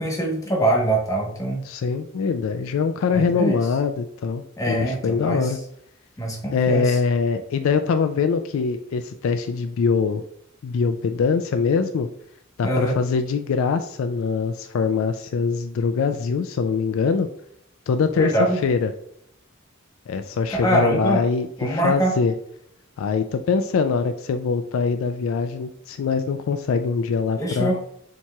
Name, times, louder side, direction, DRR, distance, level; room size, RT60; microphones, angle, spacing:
voice 1, 0.0-1.6 3.1-3.6 4.6-5.5 6.2-7.0 12.6-13.0 18.1-18.6 20.6-21.2 21.6-22.1 27.4-27.8, right 1 dB, 15° left, -1 dB, 1.1 m, -23 dB
voice 2, 1.6-5.6 6.5-10.2 10.6-12.1 12.6-17.3 17.9-18.9 20.1-22.3 23.0-27.8, left 5 dB, 70° left, 8 dB, 0.3 m, -23 dB
7.1 x 3.0 x 2.3 m, 0.73 s
head